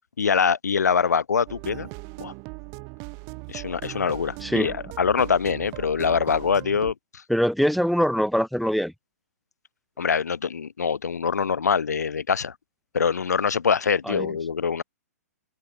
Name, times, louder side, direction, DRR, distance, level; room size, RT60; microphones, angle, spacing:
voice 1, 0.2-1.9 2.2-2.3 3.5-6.9 10.0-12.5 12.9-14.8, left 6 dB, 80° left, 2.2 m, -24 dB
sound 1, 1.5-6.9, right 35 dB, 35° right, 6.9 m, -39 dB
voice 2, 4.4-4.8 7.3-8.9 14.1-14.3, equal, ahead, 6.5 m, -23 dB
hypercardioid pair, 130°, 9 cm